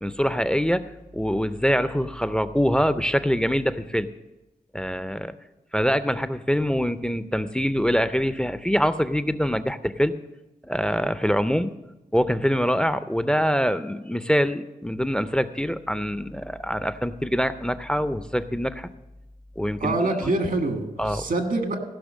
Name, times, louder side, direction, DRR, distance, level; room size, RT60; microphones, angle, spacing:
voice 1, 0.0-4.1 4.7-5.3 5.7-10.1 10.6-11.7 12.1-18.9 19.6-20.3 21.0-21.3, equal, 5° left, 13 dB, 0.4 m, -24 dB
voice 2, 19.8-21.8, right 2 dB, 80° right, 5 dB, 1.6 m, -25 dB
15.5 x 5.8 x 6.2 m, 0.99 s
wide cardioid pair, 120°, 14 cm